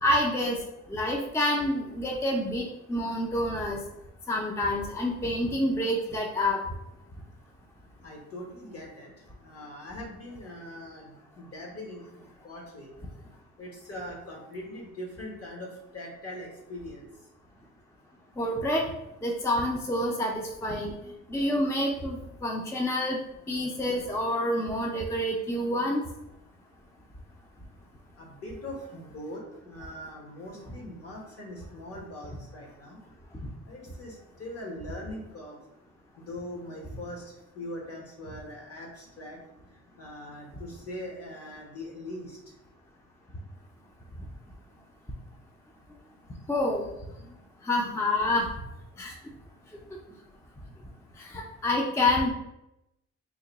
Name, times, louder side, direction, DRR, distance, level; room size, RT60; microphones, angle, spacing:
voice 1, 0.0-0.6 0.9-3.8 4.3-6.6 18.4-18.9 19.2-20.9 21.3-23.2 23.5-26.0 46.5-46.9 47.6-48.5 49.0-49.1 51.2-52.3, left 1 dB, 10° left, 0 dB, 0.4 m, -27 dB
voice 2, 8.0-12.9 13.6-17.1 28.2-33.0 33.6-35.6 36.2-39.4 39.7-42.4, left 1 dB, 50° left, 0 dB, 1.2 m, -41 dB
2.9 x 2.2 x 3.9 m, 0.87 s
cardioid pair, 90°, 30 cm